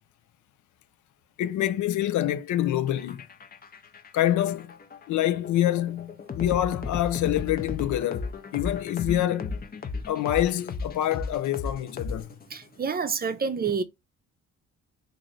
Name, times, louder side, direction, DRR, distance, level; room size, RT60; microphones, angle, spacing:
voice 1, 1.4-3.2 4.1-4.7 5.1-9.6 10.1-12.3, left 12 dB, 75° left, 0.5 m, -26 dB
sound 1, 2.9-12.6, left 4 dB, 30° left, 0.6 m, -35 dB
voice 2, 12.5-13.8, right 5 dB, 30° right, 0.6 m, -28 dB
3.0 x 2.6 x 3.9 m
cardioid pair, 90°, 30 cm